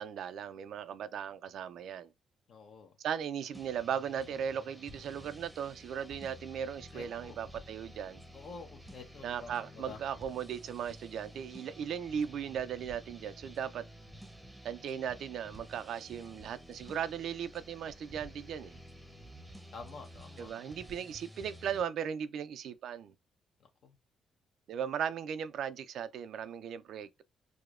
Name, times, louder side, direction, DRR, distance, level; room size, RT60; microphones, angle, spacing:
voice 1, 0.0-2.1 3.0-8.2 9.2-13.9 14.6-18.8 20.4-23.1 24.7-27.2, right 8 dB, 70° right, 0.3 m, -37 dB
voice 2, 2.5-2.9 6.9-7.4 8.3-10.0 19.7-20.5 23.8-23.9, left 4 dB, 65° left, 0.7 m, -48 dB
sound 1, 3.5-21.8, equal, 5° right, 0.7 m, -52 dB
4.8 x 2.1 x 2.4 m
cardioid pair, 90°, 0 cm